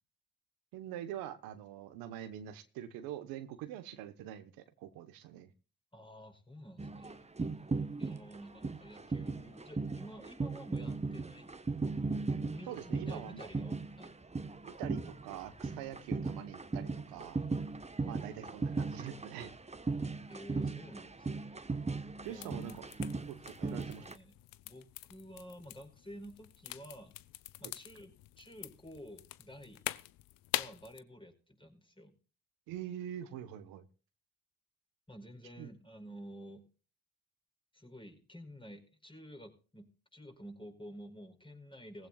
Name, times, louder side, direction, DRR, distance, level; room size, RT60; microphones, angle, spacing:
voice 1, 0.7-5.5 12.7-13.5 14.6-17.4 18.0-19.6 22.2-22.9 23.3-24.0 27.6-27.7 32.7-33.8 35.6-35.7, right 11 dB, 85° right, 9 dB, 1.2 m, -44 dB
voice 2, 5.9-7.3 8.0-11.5 12.3-14.2 18.0-18.4 20.3-21.6 22.3-22.8 23.6-24.3 24.6-27.2 27.6-28.1 28.4-29.8 30.5-32.1 35.1-36.7 37.7-42.1, equal, 15° left, 4 dB, 4.8 m, -51 dB
sound 1, 6.8-24.1, right 3 dB, 20° right, 1.2 m, -37 dB
sound 2, 22.2-31.0, left 16 dB, 80° left, 0.7 m, -44 dB
18.0 x 15.5 x 2.4 m, 0.36 s
supercardioid pair, 50°, 34 cm